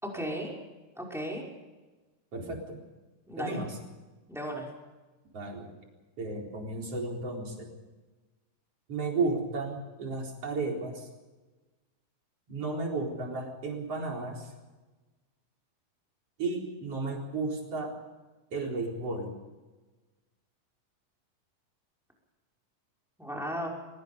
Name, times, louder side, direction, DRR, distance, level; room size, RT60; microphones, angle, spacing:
voice 1, 0.0-0.5 1.0-1.4 3.3-3.6 4.3-4.7 23.2-23.7, equal, ahead, -1 dB, 5.3 m, -35 dB
voice 2, 2.3-2.8 3.4-3.8 5.3-5.7 6.2-7.7 8.9-11.1 12.5-14.5 16.4-17.9 18.5-19.3, right 3 dB, 40° right, 0 dB, 5.0 m, -33 dB
24.0 x 21.0 x 5.4 m, 1.2 s
omnidirectional pair, 4.3 m